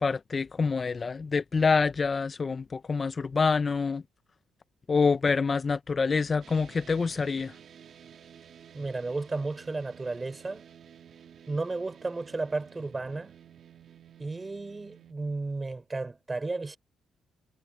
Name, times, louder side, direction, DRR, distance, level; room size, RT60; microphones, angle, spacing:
voice 1, 0.0-4.0 4.9-7.5, left 4 dB, 35° left, 0.6 m, -26 dB
sound 1, 6.4-15.1, right 8 dB, 60° right, 2.5 m, -52 dB
voice 2, 8.7-10.6 11.5-13.3 14.2-16.8, right 3 dB, 20° right, 4.8 m, -33 dB
cardioid pair, 90°, 0 cm